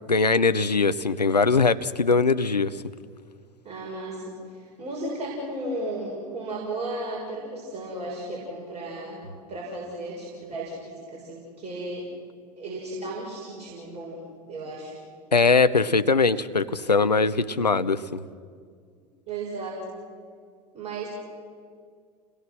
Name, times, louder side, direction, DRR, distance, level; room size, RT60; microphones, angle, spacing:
voice 1, 0.1-2.8 15.3-18.2, left 4 dB, 85° left, 12 dB, 0.7 m, -21 dB
voice 2, 3.6-12.1 12.6-15.0 19.3-19.9 20.7-21.1, right 2 dB, 30° right, -4 dB, 6.7 m, -35 dB
29.0 x 21.0 x 6.3 m, 2.1 s
figure-of-eight pair, 80°, 20 cm